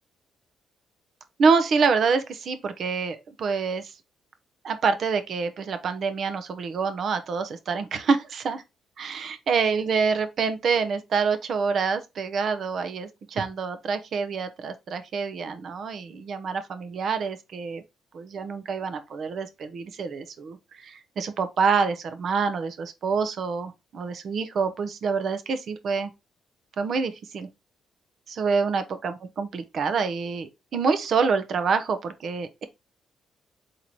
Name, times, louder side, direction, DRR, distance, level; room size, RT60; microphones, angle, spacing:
voice 1, 1.4-3.9 4.6-8.6 9.0-17.8 18.1-26.1 26.8-27.5 28.3-32.6, right 5 dB, 60° right, 0.8 m, -26 dB
4.3 x 3.9 x 3.0 m
cardioid pair, 90°, 0 cm